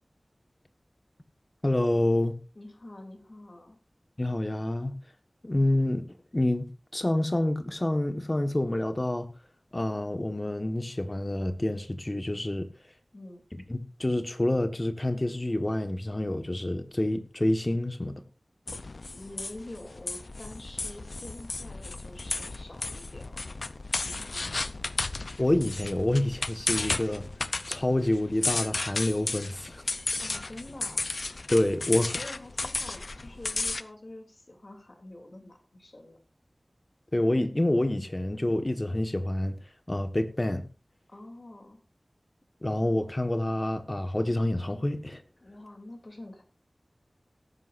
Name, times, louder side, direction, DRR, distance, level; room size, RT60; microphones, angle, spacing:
voice 1, 1.6-2.4 4.2-5.0 5.4-6.0 6.3-9.3 9.7-12.7 13.7-18.2 25.4-27.2 27.7-29.8 31.5-32.1 37.1-39.6 39.9-40.7 42.6-45.2, left 1 dB, 30° left, 1.4 m, -27 dB
voice 2, 2.5-3.8 13.1-13.4 19.1-23.5 24.0-24.5 30.2-31.0 32.1-36.2 41.1-41.8 45.4-46.4, left 1 dB, 55° left, 2.9 m, -46 dB
sound 1, 18.7-33.8, left 3 dB, 80° left, 0.6 m, -34 dB
18.0 x 9.8 x 2.6 m
wide cardioid pair, 60°, 0 cm